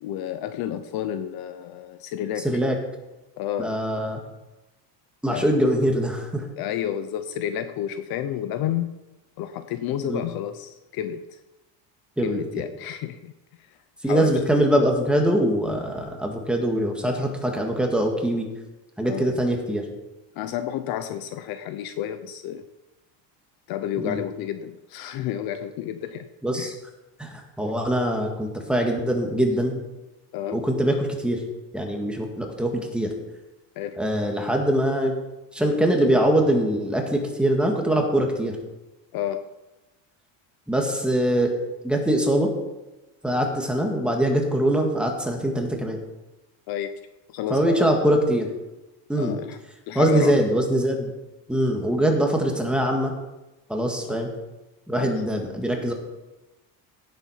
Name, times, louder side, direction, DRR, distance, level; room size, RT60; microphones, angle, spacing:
voice 1, 0.0-2.5 3.4-3.7 5.3-5.6 6.6-8.9 9.4-11.4 12.2-13.3 13.6-13.7 14.1-14.4 19.0-19.4 20.4-22.6 23.7-26.3 26.5-26.7 30.3-30.6 33.8-34.0 39.1-39.4 46.7-47.0 47.3-47.9 49.2-49.6 49.9-50.3 54.1-54.2 54.9-55.2, left 10 dB, 50° left, 10 dB, 0.8 m, -30 dB
voice 2, 2.4-2.8 3.6-4.2 5.2-6.4 10.0-10.3 12.2-12.4 14.0-18.4 19.0-19.8 24.0-24.2 26.4-26.7 27.2-29.8 30.5-31.4 31.7-33.1 34.0-35.1 35.5-38.6 40.7-41.5 41.8-42.5 43.2-46.0 47.5-48.5 49.1-49.4 50.0-51.1 51.5-53.1 53.7-54.3 54.9-55.9, right 1 dB, ahead, 1 dB, 1.7 m, -23 dB
17.0 x 7.8 x 5.7 m, 1.0 s
cardioid pair, 170°, 47 cm